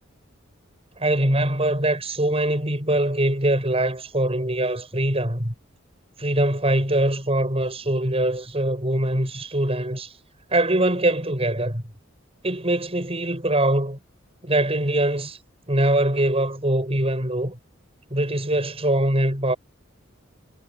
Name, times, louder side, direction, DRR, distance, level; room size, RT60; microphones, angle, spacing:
voice 1, 1.0-5.5 6.2-10.1 10.5-11.8 12.4-14.0 14.4-15.4 15.7-17.6 18.1-19.6, right 1 dB, 30° right, 7.7 m, -23 dB
head